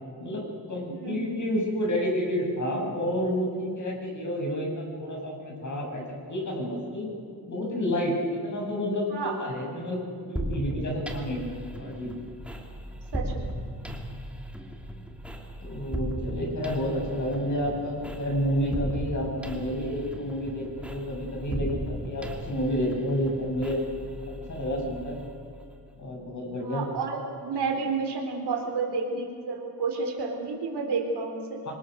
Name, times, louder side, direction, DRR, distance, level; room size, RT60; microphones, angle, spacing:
voice 1, 0.2-7.2 7.5-10.0 10.2-12.1 15.6-23.8 24.5-25.2 25.9-26.8 31.7-31.8, equal, 45° left, 0 dB, 7.7 m, -30 dB
voice 2, 0.9-1.3 9.1-9.4 13.1-13.5 26.6-31.6, right 4 dB, 70° right, 2 dB, 4.1 m, -31 dB
sound 1, 10.4-26.0, right 1 dB, 5° right, 2.6 m, -37 dB
25.5 x 20.5 x 6.6 m, 2.5 s
cardioid pair, 95°, 42 cm